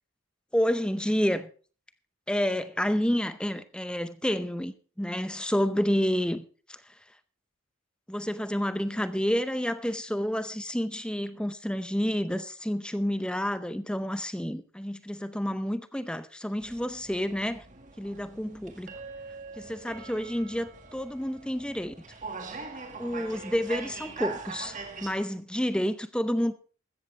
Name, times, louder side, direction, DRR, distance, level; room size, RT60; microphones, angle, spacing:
voice 1, 0.5-1.5 2.3-6.8 8.1-17.6 18.0-18.9 19.6-21.9 23.0-26.5, equal, 5° left, 0.6 m, -29 dB
sound 1, 16.6-25.1, right 4 dB, 35° right, 1.8 m, -42 dB
15.0 x 13.5 x 3.3 m
head